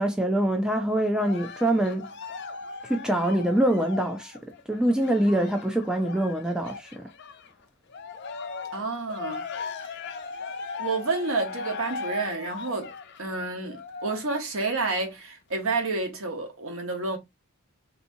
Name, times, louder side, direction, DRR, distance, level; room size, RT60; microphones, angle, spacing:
voice 1, 0.0-2.1 2.8-7.1, right 1 dB, 5° right, 0.3 m, -25 dB
Cheering, 1.2-7.5 7.9-14.5 15.1-15.2, left 5 dB, 50° left, 0.5 m, -38 dB
voice 2, 8.7-9.4 9.8-10.0 10.8-12.9 13.2-17.2, right 3 dB, 65° right, 1.0 m, -29 dB
3.4 x 2.7 x 2.6 m
head